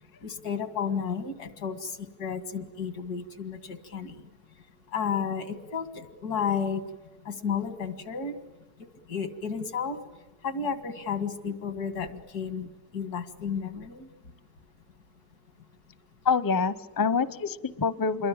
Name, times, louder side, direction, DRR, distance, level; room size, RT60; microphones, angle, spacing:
voice 1, 0.2-4.2 4.9-6.8 7.3-8.3 9.1-10.0 10.4-14.1, left 6 dB, 90° left, 11 dB, 2.5 m, -32 dB
voice 2, 16.2-18.3, left 5 dB, 20° left, 16 dB, 0.6 m, -26 dB
27.5 x 22.5 x 8.7 m, 1.1 s
omnidirectional pair, 1.6 m